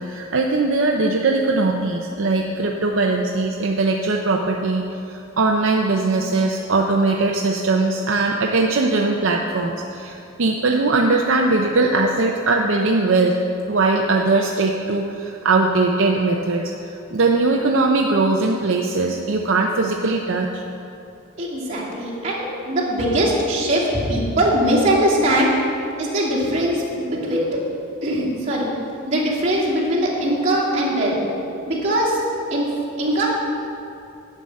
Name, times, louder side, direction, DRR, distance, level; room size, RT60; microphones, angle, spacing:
voice 1, 0.0-4.8 5.1-13.4 13.7-20.6, right 3 dB, 65° right, 1 dB, 0.6 m, -20 dB
voice 2, 21.4-25.5 26.0-27.5 28.0-28.7 29.1-31.2 31.7-32.2 32.5-32.7 33.0-33.3, right 1 dB, 35° right, -7 dB, 2.7 m, -21 dB
10.5 x 5.6 x 7.6 m, 2.7 s
head